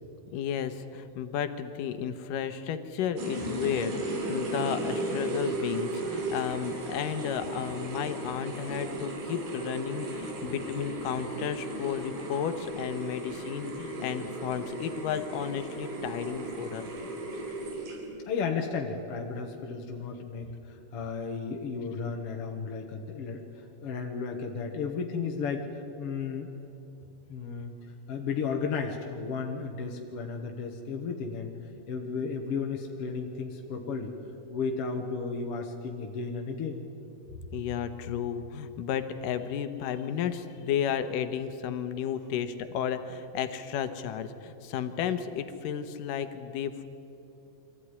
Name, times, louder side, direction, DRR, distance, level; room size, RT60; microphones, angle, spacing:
voice 1, 0.3-16.9 37.4-46.9, left 8 dB, 80° left, 10 dB, 2.6 m, -33 dB
sound 1, 3.2-18.3, right 2 dB, 70° right, 4.4 m, -35 dB
voice 2, 18.3-26.5 27.3-27.7 28.1-31.5 31.9-34.1 34.5-36.8, left 5 dB, 55° left, 2 dB, 1.8 m, -34 dB
23.5 x 15.0 x 9.8 m, 2.8 s
omnidirectional pair, 3.9 m